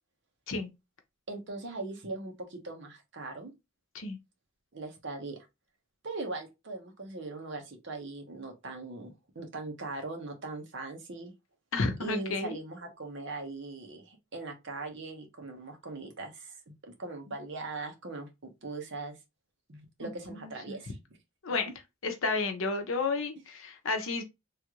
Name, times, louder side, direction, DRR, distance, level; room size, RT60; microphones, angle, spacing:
voice 1, 1.3-3.5 4.7-5.4 6.0-11.3 12.0-19.2 19.7-21.0, right 3 dB, 60° right, 0.9 m, -40 dB
voice 2, 11.7-12.6 20.0-20.8 21.4-21.7 22.0-24.2, left 3 dB, 75° left, 0.7 m, -32 dB
3.2 x 2.4 x 3.0 m
head